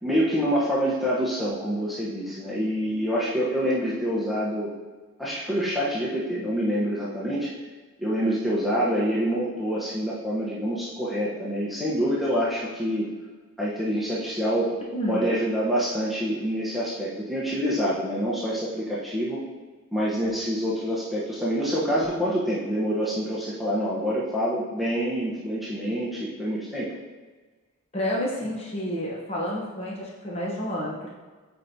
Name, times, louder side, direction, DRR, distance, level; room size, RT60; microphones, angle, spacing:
voice 1, 0.0-4.7 5.2-7.5 8.0-13.1 13.6-14.7 15.1-19.4 19.9-26.9, equal, ahead, -8 dB, 0.9 m, -26 dB
voice 2, 27.9-31.1, equal, 30° left, -4 dB, 1.0 m, -30 dB
8.5 x 4.5 x 2.8 m, 1.4 s
head